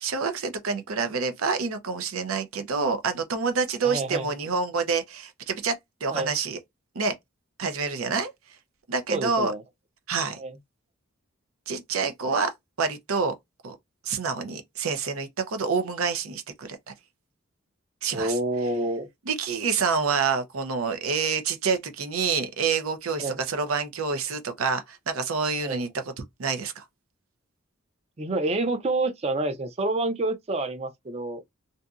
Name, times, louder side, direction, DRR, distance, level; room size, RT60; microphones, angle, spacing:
voice 1, 0.0-6.6 6.9-7.1 7.6-8.3 8.9-9.5 10.1-10.4 11.7-12.5 12.8-13.3 13.6-13.8 14.0-16.8 18.0-18.4 19.3-25.9 26.4-26.8, right 5 dB, 80° right, 0.6 m, -27 dB
voice 2, 3.8-4.3 6.1-6.3 9.1-9.6 10.4-10.6 18.1-19.1 23.2-23.4 25.6-25.8 28.2-31.4, right 2 dB, 30° right, 0.5 m, -28 dB
2.6 x 2.6 x 2.3 m
head